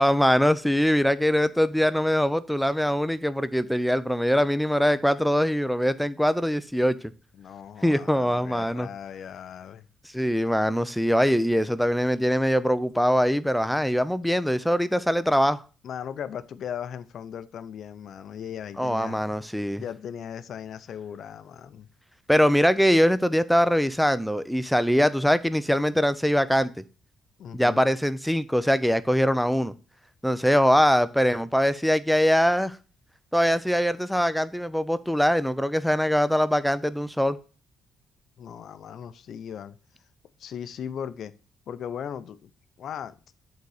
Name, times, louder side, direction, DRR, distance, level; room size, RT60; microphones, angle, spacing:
voice 1, 0.0-7.0 7.8-8.9 10.1-15.6 18.8-19.8 22.3-26.7 27.5-29.7 30.2-32.8 33.3-37.4, equal, ahead, 0.5 m, -22 dB
voice 2, 7.3-9.8 15.8-19.3 19.8-21.9 27.4-27.9 38.4-39.8 40.4-41.3 41.7-42.5 42.8-43.1, left 8 dB, 65° left, 0.6 m, -38 dB
8.1 x 3.9 x 4.8 m
cardioid pair, 90°, 0 cm